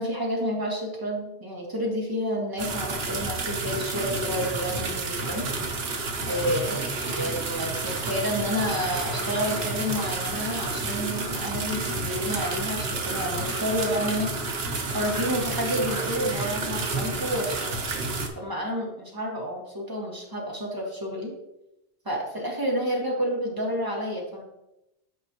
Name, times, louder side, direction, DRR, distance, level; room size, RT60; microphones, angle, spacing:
voice 1, 0.0-5.5 6.3-6.8 7.2-14.3 14.9-17.8 18.3-21.3 22.0-24.4, equal, 20° right, -2 dB, 1.6 m, -30 dB
sound 1, 2.6-18.3, right 3 dB, 70° right, 1.1 m, -30 dB
sound 2, 5.2-17.6, left 1 dB, 55° left, 2.2 m, -42 dB
8.7 x 5.3 x 2.9 m, 0.89 s
omnidirectional pair, 1.1 m